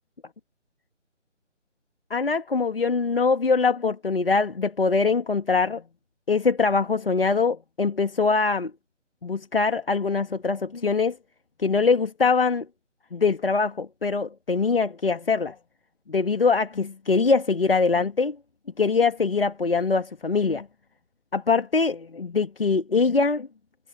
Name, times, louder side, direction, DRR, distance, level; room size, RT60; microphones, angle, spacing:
voice 1, 2.1-5.8 6.3-8.7 9.2-11.2 11.6-12.7 13.1-15.6 16.1-18.4 18.8-20.7 21.3-23.5, left 4 dB, 50° left, 2.0 m, -23 dB
figure-of-eight pair, 155°, 37 cm